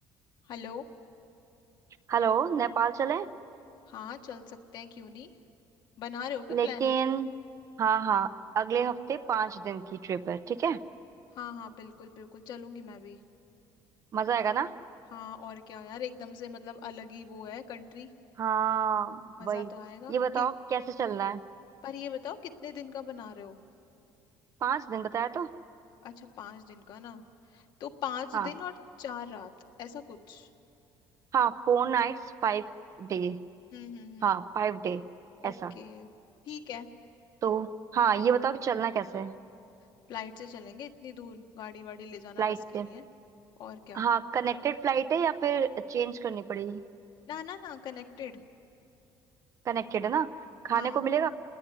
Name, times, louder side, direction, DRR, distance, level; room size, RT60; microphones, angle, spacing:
voice 1, 0.4-0.8 3.9-5.3 6.0-6.9 11.3-13.2 15.1-18.1 19.4-20.5 21.8-23.6 26.0-28.7 29.0-29.5 29.8-30.5 33.7-34.4 35.4-36.1 36.4-36.9 40.1-42.6 42.8-43.0 43.6-44.0 47.3-48.4 50.7-51.1, left 8 dB, 60° left, 5 dB, 1.6 m, -41 dB
voice 2, 2.1-3.3 6.5-7.3 7.8-10.8 14.1-14.7 18.4-19.7 20.1-21.4 24.6-25.5 28.3-28.5 31.3-32.7 33.0-33.4 34.2-35.0 35.4-35.7 37.4-39.3 42.4-42.9 43.9-46.8 49.7-50.3 50.6-51.3, right 7 dB, 40° right, 12 dB, 0.7 m, -28 dB
29.0 x 20.5 x 9.5 m, 2.7 s
cardioid pair, 140°, 9 cm